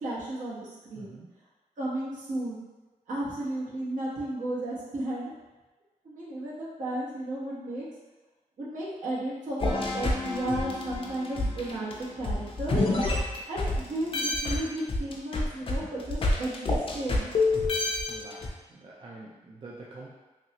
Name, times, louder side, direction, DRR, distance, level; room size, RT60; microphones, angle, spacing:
voice 1, 0.0-1.2 1.8-2.6 3.1-5.3 6.0-7.8 8.6-12.8 13.5-17.3, right 1 dB, 70° right, -7 dB, 1.0 m, -34 dB
voice 2, 1.0-1.3 18.1-20.1, right 2 dB, 40° right, -4 dB, 0.4 m, -46 dB
sound 1, 9.6-13.8 14.1-18.5, left 2 dB, 40° left, 0.4 m, -28 dB
3.0 x 2.7 x 2.8 m, 1.2 s
wide cardioid pair, 175°, 13 cm